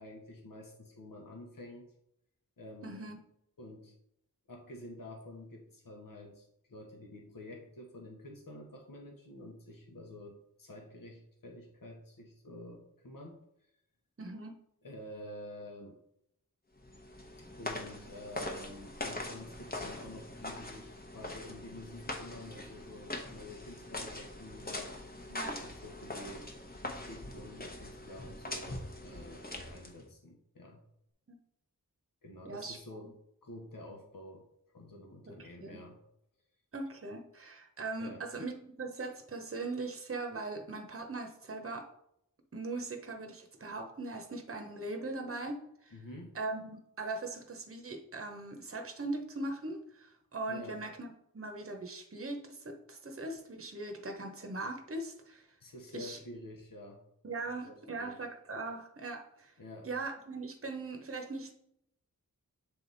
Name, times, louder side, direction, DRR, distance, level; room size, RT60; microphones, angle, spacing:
voice 1, 0.0-1.9 2.6-3.1 3.6-3.9 4.5-13.5 14.8-16.0 17.6-26.6 26.8-30.8 32.2-33.1 33.4-34.4 34.7-36.0 38.0-38.2 45.9-46.3 50.5-50.8 55.6-57.0 57.6-58.2 59.6-59.9, left 1 dB, 70° left, 1 dB, 1.1 m, -49 dB
voice 2, 2.8-3.2 14.2-14.5 25.3-25.6 31.3-31.4 32.4-32.8 35.3-35.4 35.6-35.8 36.7-41.9 42.5-45.9 46.3-55.5 55.9-56.2 57.2-59.5 59.8-61.5, right 2 dB, 40° right, 4 dB, 0.9 m, -40 dB
sound 1, 16.8-30.1, left 1 dB, 25° left, 1.0 m, -42 dB
7.8 x 3.4 x 4.0 m, 0.75 s
wide cardioid pair, 55°, 35 cm